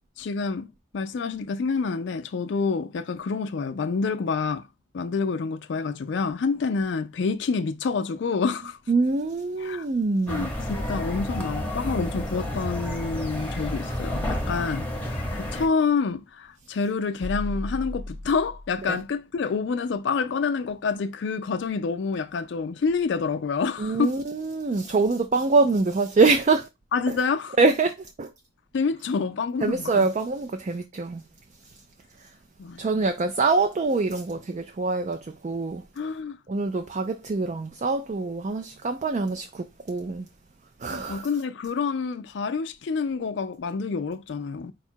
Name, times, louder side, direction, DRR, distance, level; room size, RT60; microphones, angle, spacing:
voice 1, 0.2-0.7 0.9-4.7 4.9-8.8 9.6-9.9 10.3-24.2 26.9-27.6 28.7-30.1 32.6-33.1 36.0-36.4 40.9-44.7, left 5 dB, 65° left, 0.4 m, -28 dB
voice 2, 8.9-10.5 18.9-19.0 23.8-26.7 27.1-27.2 27.6-28.3 29.6-31.2 32.8-35.8 36.5-40.3 40.8-41.3, right 3 dB, 35° right, 0.4 m, -24 dB
sound 1, 10.3-15.7, left 1 dB, 10° left, 0.8 m, -30 dB
sound 2, 17.2-19.0, left 1 dB, 75° right, 0.7 m, -35 dB
4.7 x 2.3 x 4.3 m
head